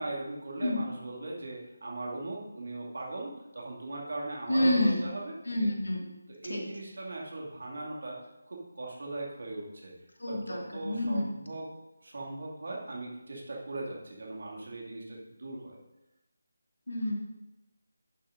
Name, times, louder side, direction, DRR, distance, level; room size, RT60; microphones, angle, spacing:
voice 1, 0.0-5.7 6.4-8.2 8.5-9.9 10.3-11.7 12.0-15.8, right 2 dB, 50° right, -2 dB, 2.3 m, -39 dB
voice 2, 4.5-5.1 5.4-6.1 6.5-6.6 10.2-11.3 16.9-17.1, left 1 dB, 70° left, -1 dB, 2.3 m, -28 dB
11.0 x 9.1 x 2.7 m, 0.97 s
figure-of-eight pair, 160°, 0 cm